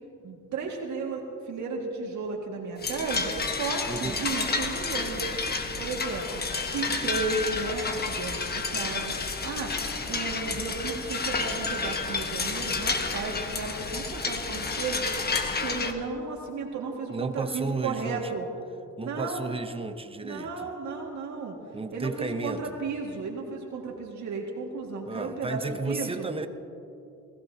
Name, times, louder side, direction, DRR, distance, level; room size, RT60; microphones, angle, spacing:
voice 1, 0.2-5.2 5.8-6.4 6.7-9.1 9.4-9.7 10.1-15.1 15.6-18.5 19.0-19.6 20.2-21.6 21.9-26.3, right 4 dB, 70° right, -1 dB, 2.0 m, -34 dB
sound 1, 2.8-15.9, left 4 dB, 30° left, 1.3 m, -30 dB
voice 2, 3.9-4.2 17.1-18.4 19.0-20.7 21.7-22.8 25.1-26.5, right 3 dB, 20° right, 9 dB, 0.8 m, -33 dB
21.0 x 15.5 x 2.8 m, 2.8 s
cardioid pair, 90°, 30 cm